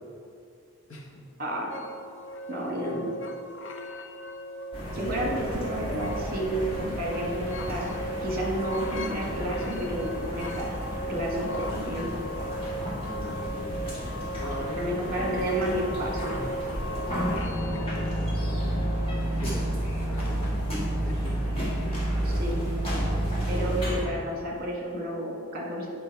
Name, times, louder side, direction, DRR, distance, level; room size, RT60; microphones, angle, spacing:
voice 1, 0.9-1.2 2.8-3.0 13.0-13.8 14.4-16.0 16.8-18.9 19.2-19.7 20.1-21.5, left 1 dB, 70° left, 0 dB, 1.2 m, -40 dB
sound 1, 1.7-19.2, equal, 55° left, 0.6 m, -38 dB
voice 2, 2.5-3.1 4.9-10.7 11.0-12.1 14.8-16.3 22.2-22.7 23.5-25.9, right 1 dB, 40° right, -1 dB, 1.4 m, -31 dB
sound 2, 4.7-24.0, equal, 25° left, 1.8 m, -31 dB
8.6 x 5.3 x 4.6 m, 2.5 s
head